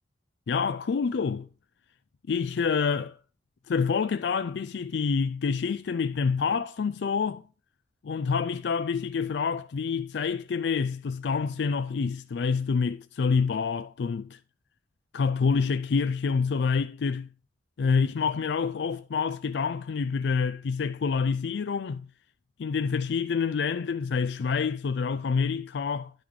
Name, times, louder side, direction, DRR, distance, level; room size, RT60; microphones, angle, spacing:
voice 1, 0.5-1.5 2.3-3.2 3.7-7.4 8.0-14.4 15.1-17.3 17.8-22.1 22.6-26.1, left 5 dB, 75° left, 0.4 m, -27 dB
10.5 x 5.3 x 4.8 m
head